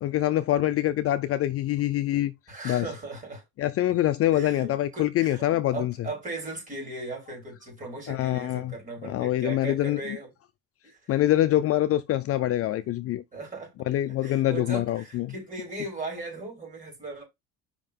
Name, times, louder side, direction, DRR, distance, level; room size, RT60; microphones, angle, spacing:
voice 1, 0.0-2.3 2.6-2.9 3.6-5.9 8.1-8.7 9.0-10.0 11.1-13.2 13.9-15.3, left 13 dB, 45° left, 0.5 m, -25 dB
voice 2, 2.5-3.4 4.3-10.3 10.8-11.1 13.3-13.7 14.1-17.2, right 2 dB, 20° right, 4.3 m, -38 dB
5.4 x 3.8 x 5.3 m
cardioid pair, 145°, 34 cm